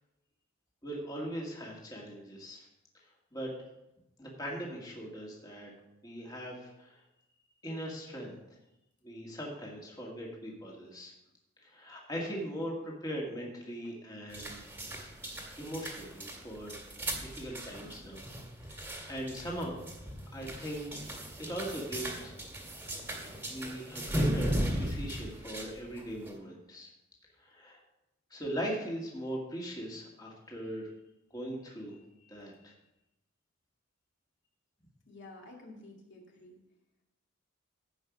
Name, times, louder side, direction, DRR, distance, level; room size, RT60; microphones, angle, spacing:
voice 1, 0.8-2.7 3.3-3.7 4.2-5.7 6.0-7.0 7.6-8.4 9.0-11.1 11.6-14.6 15.6-16.7 17.2-18.3 18.7-19.8 20.3-20.9 21.4-22.3 22.8-23.1 23.5-26.9 27.4-27.8 28.3-30.9 31.3-32.0 32.3-32.7, equal, 20° left, -3 dB, 2.1 m, -40 dB
sound 1, 14.3-26.4, right 1 dB, 10° right, 2.0 m, -37 dB
voice 2, 35.1-36.6, left 2 dB, 60° left, -1 dB, 2.3 m, -51 dB
15.5 x 5.6 x 5.3 m, 0.90 s
head